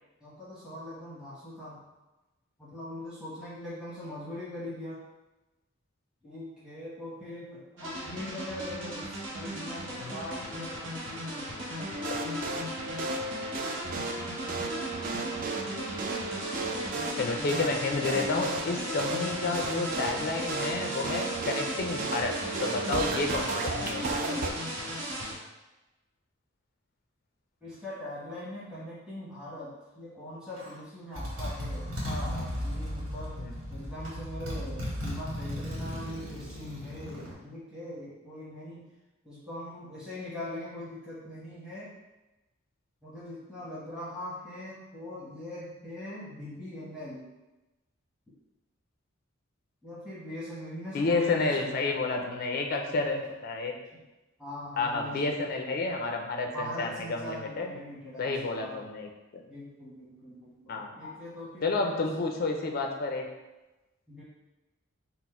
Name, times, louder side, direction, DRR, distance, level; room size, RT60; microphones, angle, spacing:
voice 1, 0.2-1.8 2.6-5.0 6.2-11.7 27.6-33.4 33.7-38.9 39.2-41.9 43.0-47.3 49.8-51.7 52.9-53.2 53.9-54.0 54.4-55.5 56.5-58.8 59.5-62.0 64.1-64.2, left 1 dB, 5° right, -10 dB, 1.0 m, -41 dB
sound 1, 7.8-25.3, equal, 60° right, 0.9 m, -37 dB
sound 2, 11.8-24.5, right 2 dB, 40° right, 0.3 m, -34 dB
voice 2, 17.2-22.3 22.6-24.0 24.3-24.5 33.4-33.5 50.9-53.7 54.8-57.7 58.2-59.4 60.7-61.1 61.6-63.2, left 3 dB, 45° left, 2 dB, 0.4 m, -30 dB
Motorcycle, 30.6-30.7 31.1-37.3, equal, 75° right, 1.4 m, -36 dB
4.2 x 2.0 x 4.3 m, 1.1 s
head